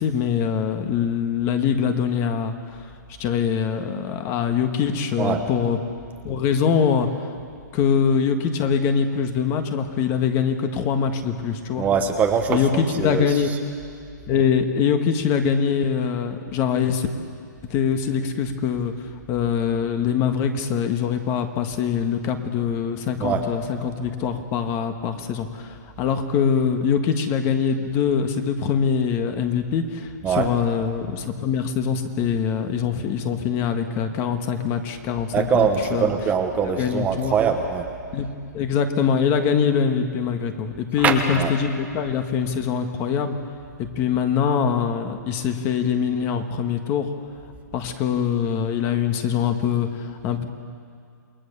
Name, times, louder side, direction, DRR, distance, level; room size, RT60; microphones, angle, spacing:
voice 1, 0.0-2.5 3.2-5.8 6.2-7.1 7.7-11.8 12.5-13.5 14.3-17.1 17.7-18.9 19.3-36.1 36.6-37.3 38.1-38.3 38.5-43.4 43.8-47.1 47.7-50.5, left 7 dB, 25° left, 7 dB, 1.6 m, -23 dB
voice 2, 11.8-13.3 23.2-23.4 30.2-30.5 35.3-37.9 41.0-41.5, right 6 dB, 15° right, 4 dB, 1.2 m, -22 dB
28.5 x 20.5 x 6.9 m, 2.3 s
hypercardioid pair, 155°, 10 cm